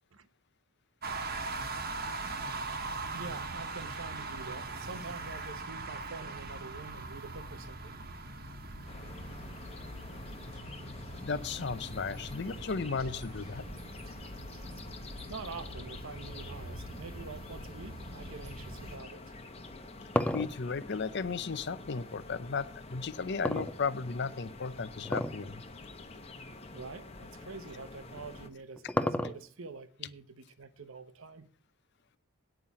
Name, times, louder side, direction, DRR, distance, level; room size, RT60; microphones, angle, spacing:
sound 1, 1.0-19.0, right 3 dB, 45° right, 1.2 m, -41 dB
voice 1, 3.1-8.0 14.7-14.8 15.3-19.3 26.7-31.5, right 4 dB, 65° right, 0.9 m, -46 dB
sound 2, 8.9-28.5, left 3 dB, 30° left, 0.9 m, -48 dB
voice 2, 11.2-13.6 20.3-25.6, left 5 dB, 50° left, 0.6 m, -35 dB
sound 3, 19.7-22.1 23.4-24.3 25.0-25.5 25.8-25.9 26.7-26.8 28.2-29.7, left 1 dB, 5° left, 0.4 m, -32 dB
9.3 x 5.7 x 8.2 m
head